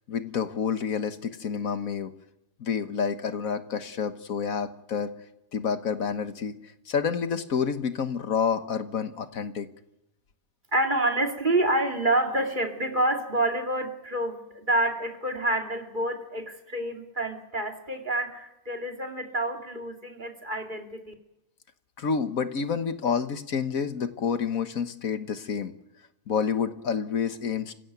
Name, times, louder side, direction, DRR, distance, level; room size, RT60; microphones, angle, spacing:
voice 1, 0.1-2.1 2.6-5.1 5.5-9.7 22.0-25.7 26.3-27.7, left 6 dB, 80° left, 10 dB, 1.7 m, -29 dB
voice 2, 10.7-21.1, right 1 dB, 35° right, 3 dB, 2.8 m, -28 dB
27.5 x 16.0 x 9.3 m, 0.93 s
omnidirectional pair, 1.4 m